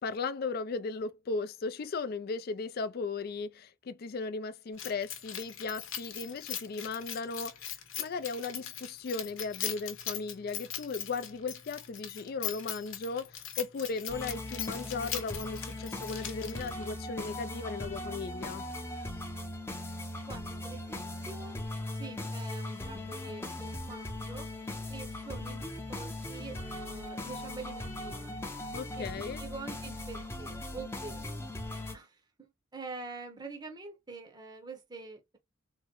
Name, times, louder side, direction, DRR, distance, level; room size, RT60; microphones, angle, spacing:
voice 1, 0.0-18.6 28.7-29.4, left 4 dB, 50° left, 0.4 m, -36 dB
Keys jangling, 4.8-16.9, left 10 dB, 80° left, 0.9 m, -40 dB
sound 1, 14.1-31.9, left 1 dB, 10° left, 0.6 m, -39 dB
voice 2, 20.3-21.7 21.9-24.5 24.9-28.4 29.0-31.5 31.9-35.4, right 4 dB, 20° right, 0.7 m, -46 dB
3.7 x 2.1 x 2.9 m
head